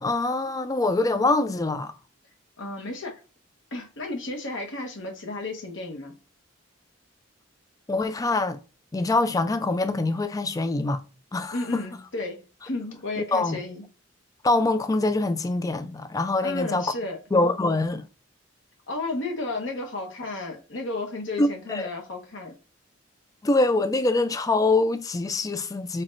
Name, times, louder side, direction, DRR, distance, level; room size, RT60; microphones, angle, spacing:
voice 1, 0.0-1.9 7.9-8.6 8.9-11.0 11.3-11.8 13.2-13.6 14.4-16.9 17.3-18.1 21.4-21.9 23.4-26.0, left 2 dB, 15° left, 0.3 m, -24 dB
voice 2, 2.6-3.2 3.7-6.2 11.5-13.9 16.4-17.2 18.9-22.5, left 2 dB, 65° left, 1.1 m, -33 dB
4.5 x 4.0 x 2.5 m
head